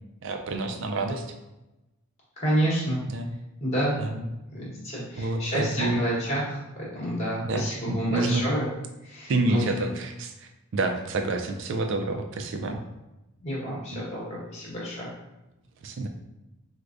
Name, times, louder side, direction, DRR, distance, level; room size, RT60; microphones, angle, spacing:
voice 1, 0.2-1.2 3.1-3.3 4.0-4.2 5.2-6.0 7.4-8.5 9.3-12.8 13.9-14.0 15.8-16.1, right 2 dB, 55° right, 5 dB, 0.3 m, -28 dB
voice 2, 2.4-3.0 3.6-4.0 4.5-8.7 9.0-9.7 13.4-15.1, equal, 30° left, -6 dB, 1.0 m, -29 dB
4.7 x 2.1 x 2.5 m, 0.98 s
head